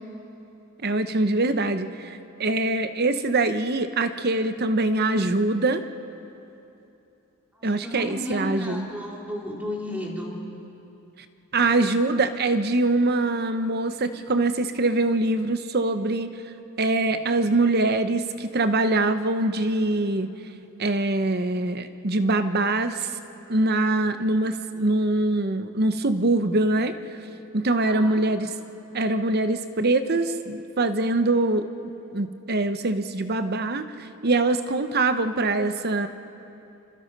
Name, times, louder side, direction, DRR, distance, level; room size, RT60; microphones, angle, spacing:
voice 1, 0.8-5.8 7.6-8.9 11.5-16.3 16.8-20.3 20.8-23.1 23.5-26.9 27.5-28.5 28.9-31.7 32.1-36.1, right 2 dB, 45° right, 10 dB, 0.9 m, -23 dB
voice 2, 7.8-10.4 27.7-28.2, left 1 dB, 5° right, -2 dB, 3.0 m, -33 dB
27.0 x 26.5 x 5.4 m, 2.9 s
head